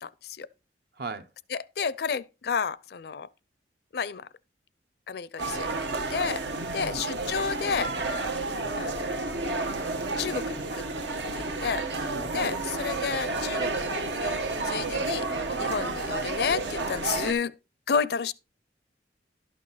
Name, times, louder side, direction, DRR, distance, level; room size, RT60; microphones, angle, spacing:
voice 1, 0.0-0.5 1.5-3.3 3.9-4.3 5.1-7.9 8.8-9.3 10.2-10.8 11.1-11.9 12.3-17.6 17.9-18.3, left 6 dB, 60° left, 0.5 m, -31 dB
voice 2, 1.0-1.3 6.5-7.1 12.0-12.6, right 2 dB, 60° right, 0.8 m, -38 dB
sound 1, 5.4-17.3, right 3 dB, 80° right, 1.3 m, -31 dB
11.5 x 6.3 x 4.0 m
head